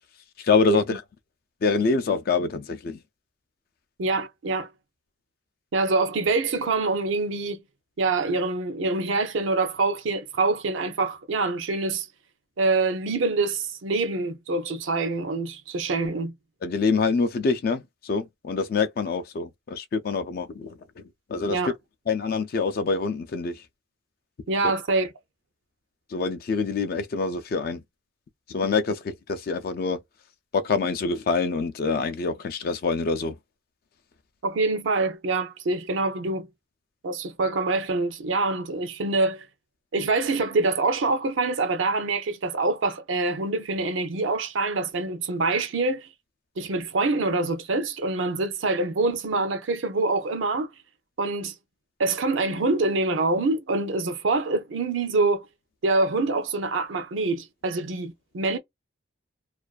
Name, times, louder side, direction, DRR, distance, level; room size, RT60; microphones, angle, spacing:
voice 1, 0.4-1.0 1.6-3.0 16.6-20.8 21.3-21.6 22.1-23.5 26.1-27.8 28.5-30.0 30.5-33.4, left 4 dB, 50° left, 0.3 m, -25 dB
voice 2, 4.0-4.7 5.7-7.6 8.0-12.1 12.6-16.3 21.5-21.7 24.5-25.1 34.4-36.5 37.0-39.4 39.9-46.1 46.6-50.7 51.2-51.5 52.0-55.5 55.8-58.6, right 3 dB, 80° right, 0.5 m, -25 dB
2.4 x 2.2 x 2.3 m
head